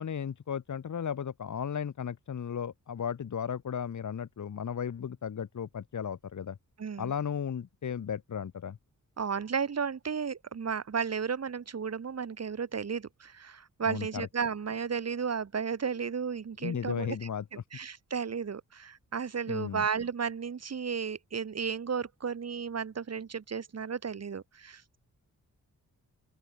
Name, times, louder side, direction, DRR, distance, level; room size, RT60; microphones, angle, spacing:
voice 1, 0.0-6.6 7.0-8.8 13.9-14.3 16.6-17.4 19.5-19.9, left 7 dB, 60° left, 1.8 m, -35 dB
voice 2, 6.8-7.1 9.2-17.2 17.5-25.0, right 6 dB, 50° right, 2.0 m, -34 dB
open air
wide cardioid pair, 125°, 33 cm